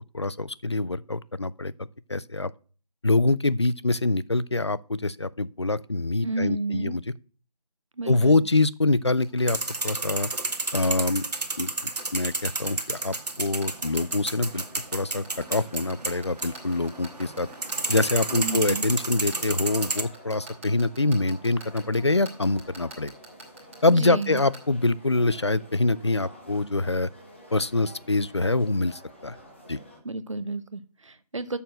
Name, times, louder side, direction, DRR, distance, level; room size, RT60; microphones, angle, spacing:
voice 1, 0.1-1.7 2.1-2.5 3.0-7.0 8.1-9.6 9.8-10.3 10.7-11.2 11.6-11.7 12.1-14.6 14.9-15.2 15.5-17.5 17.9-23.1 23.8-27.1 27.5-29.4 29.7-29.8, left 2 dB, 45° left, 0.4 m, -25 dB
voice 2, 6.2-7.0 8.0-8.4 18.3-18.9 23.9-24.4 30.0-31.6, right 2 dB, 55° right, 0.8 m, -31 dB
sound 1, 9.1-24.6, right 2 dB, 20° right, 1.9 m, -43 dB
sound 2, 9.5-20.0, right 3 dB, 90° right, 1.4 m, -31 dB
sound 3, 13.6-30.0, equal, 20° left, 1.2 m, -49 dB
6.9 x 6.0 x 7.4 m
figure-of-eight pair, 180°, 20 cm